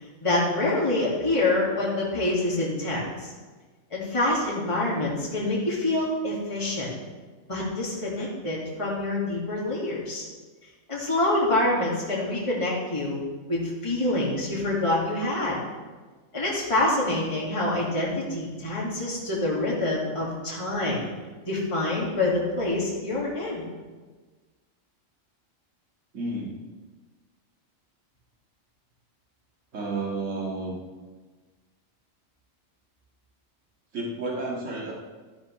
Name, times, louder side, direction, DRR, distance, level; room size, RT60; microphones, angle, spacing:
voice 1, 0.2-3.3 3.9-6.9 7.5-10.2 10.9-13.2 13.5-15.6 16.3-21.1 21.5-23.6, left 2 dB, 25° left, -5 dB, 2.2 m, -26 dB
voice 2, 26.1-26.5 29.7-30.8 33.9-34.9, right 2 dB, 65° right, -3 dB, 2.3 m, -31 dB
14.0 x 10.5 x 3.2 m, 1.3 s
omnidirectional pair, 1.4 m